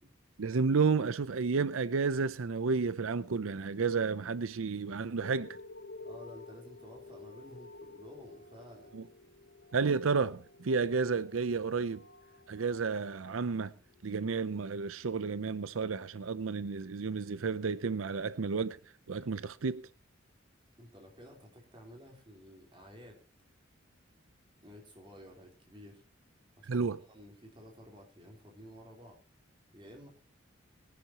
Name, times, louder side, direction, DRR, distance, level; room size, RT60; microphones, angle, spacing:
voice 1, 0.4-5.6 8.9-9.0 9.7-12.0 12.5-13.7 14.0-18.8 19.1-19.9 26.7-27.0, right 5 dB, 90° right, 0.6 m, -31 dB
sound 1, 5.2-14.1 14.7-14.8, left 2 dB, 55° left, 1.0 m, -52 dB
voice 2, 6.0-9.0 20.8-23.2 24.6-26.0 26.6-26.8 27.1-29.2 29.7-30.1, equal, 25° right, 3.7 m, -52 dB
21.5 x 11.5 x 2.9 m
head